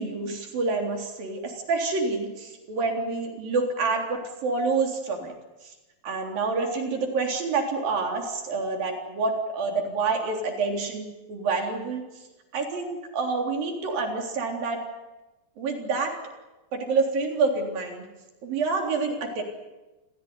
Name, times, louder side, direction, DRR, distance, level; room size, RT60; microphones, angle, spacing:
voice 1, 0.0-5.3 6.0-12.0 12.5-14.8 15.6-16.1 16.7-18.1 18.4-19.4, right 4 dB, 55° right, 2 dB, 5.3 m, -27 dB
29.0 x 16.0 x 9.7 m, 1.1 s
omnidirectional pair, 4.8 m